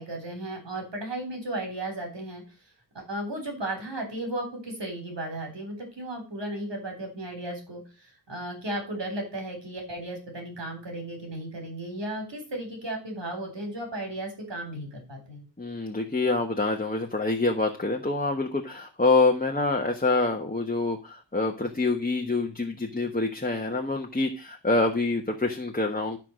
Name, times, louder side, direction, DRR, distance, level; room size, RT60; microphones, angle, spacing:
voice 1, 0.0-2.4 2.9-7.8 8.3-15.4, right 1 dB, 65° right, 2 dB, 3.9 m, -35 dB
voice 2, 15.6-26.2, left 3 dB, 20° left, 2 dB, 1.2 m, -26 dB
13.0 x 4.7 x 6.3 m, 0.33 s
wide cardioid pair, 80°, 46 cm